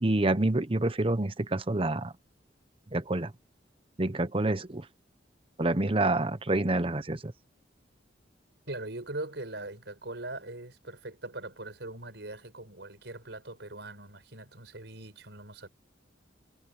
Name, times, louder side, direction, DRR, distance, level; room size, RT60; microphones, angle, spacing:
voice 1, 0.0-2.1 2.9-3.3 4.0-4.8 5.6-7.3, right 2 dB, 30° right, 1.0 m, -27 dB
voice 2, 8.7-15.7, right 2 dB, 70° right, 5.5 m, -41 dB
head